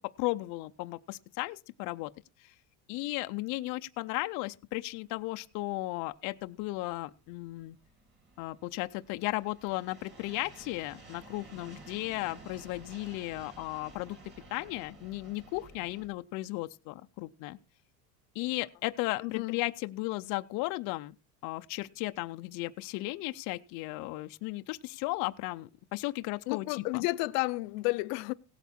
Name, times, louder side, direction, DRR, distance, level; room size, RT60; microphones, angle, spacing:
voice 1, 0.2-2.1 2.4-2.5 2.9-7.8 8.4-14.2 14.5-17.6 18.3-21.2 21.4-27.1, left 20 dB, 45° left, 0.5 m, -35 dB
sound 1, 5.1-16.1, right 2 dB, 20° right, 2.9 m, -53 dB
voice 2, 19.2-19.6 26.5-28.3, left 22 dB, 80° left, 0.7 m, -31 dB
17.0 x 8.2 x 4.3 m
cardioid pair, 160°, 46 cm